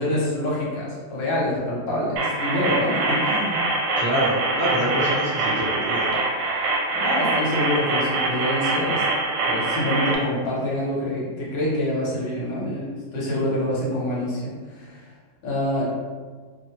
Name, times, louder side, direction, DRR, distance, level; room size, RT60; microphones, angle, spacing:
voice 1, 0.0-3.7 6.9-9.0 9.5-15.0 15.4-15.9, left 1 dB, 70° left, -5 dB, 1.4 m, -26 dB
sound 1, 2.2-10.2, right 2 dB, 85° right, 1.4 m, -24 dB
voice 2, 3.9-6.1, equal, 40° right, -12 dB, 0.7 m, -26 dB
3.2 x 2.1 x 2.7 m, 1.5 s
omnidirectional pair, 2.2 m